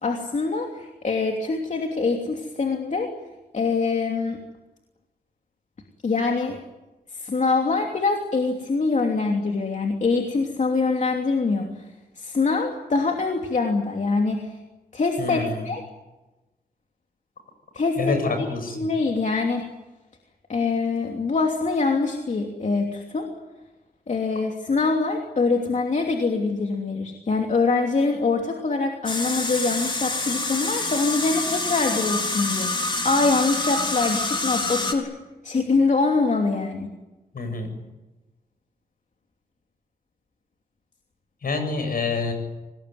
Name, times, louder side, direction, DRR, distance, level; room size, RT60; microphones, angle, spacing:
voice 1, 0.0-3.1 3.5-4.4 6.0-6.6 7.1-11.9 12.2-14.6 14.9-15.8 17.7-18.5 18.7-19.7 20.5-23.3 24.1-32.7 33.0-35.1 35.4-36.9, left 4 dB, 50° left, 2 dB, 2.9 m, -24 dB
voice 2, 15.2-15.6 18.0-18.8 37.3-37.7 41.4-42.3, left 3 dB, 65° left, 7 dB, 7.7 m, -26 dB
sound 1, 29.1-34.9, left 2 dB, 30° left, 4.1 m, -27 dB
26.5 x 19.5 x 9.6 m, 1.1 s
wide cardioid pair, 100°, 16 cm